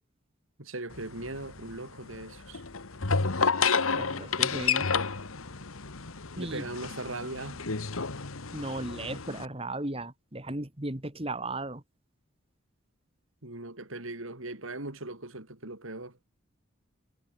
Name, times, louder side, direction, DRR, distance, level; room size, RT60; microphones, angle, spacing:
voice 1, 0.6-2.6 6.4-7.6 13.4-16.2, right 2 dB, 80° right, 3.8 m, -39 dB
sound 1, 0.9-9.5, left 5 dB, 90° left, 1.6 m, -31 dB
voice 2, 3.9-4.9 6.4-6.6 8.5-11.8, right 2 dB, 25° right, 2.2 m, -36 dB
head